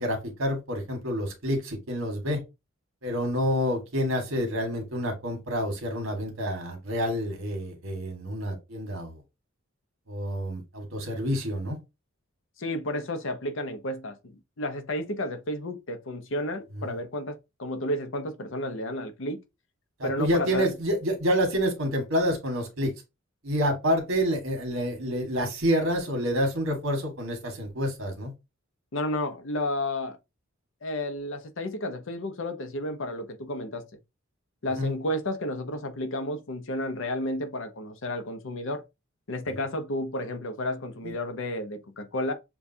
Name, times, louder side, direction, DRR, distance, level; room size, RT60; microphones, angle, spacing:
voice 1, 0.0-2.4 3.0-9.2 10.1-11.8 16.8-17.0 20.0-22.9 23.4-28.3 34.8-34.9 41.0-41.1, equal, 70° right, 1.6 m, -28 dB
voice 2, 12.6-19.4 20.0-20.7 28.9-30.2 30.8-33.9 34.6-38.8 39.3-42.3, left 1 dB, 65° left, 0.8 m, -32 dB
6.9 x 2.4 x 2.7 m
head